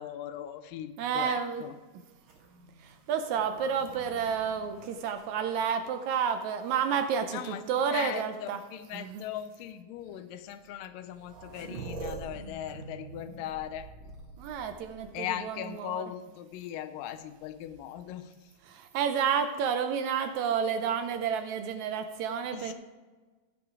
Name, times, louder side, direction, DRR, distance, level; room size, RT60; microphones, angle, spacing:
voice 1, 0.0-1.7 7.3-7.6 7.9-13.9 15.1-18.3 22.5-22.7, left 11 dB, 90° left, 10 dB, 2.3 m, -39 dB
voice 2, 1.0-1.6 2.8-8.6 8.9-9.2 14.4-16.0 18.6-22.7, right 7 dB, 80° right, 7 dB, 1.7 m, -30 dB
sound 1, 2.2-6.0 6.7-7.4 8.5-8.6 9.4-9.5 10.7-10.8 11.0-15.4 17.4-18.1, right 3 dB, 45° right, 1.9 m, -46 dB
15.0 x 5.1 x 4.8 m, 1.3 s
omnidirectional pair, 3.8 m